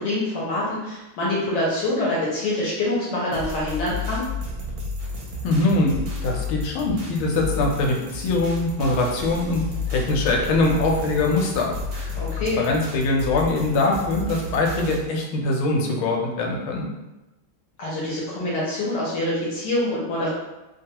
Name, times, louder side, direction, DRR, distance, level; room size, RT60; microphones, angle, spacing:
voice 1, 0.0-4.2 12.2-12.6 17.8-20.3, left 1 dB, 65° left, -6 dB, 1.2 m, -25 dB
sound 1, 3.3-15.0, left 3 dB, 70° right, 0.9 m, -32 dB
voice 2, 5.4-5.9 6.2-9.6 9.9-12.1 12.4-16.8, left 2 dB, 85° left, 0 dB, 1.4 m, -23 dB
3.3 x 2.3 x 2.8 m, 1.0 s
omnidirectional pair, 2.2 m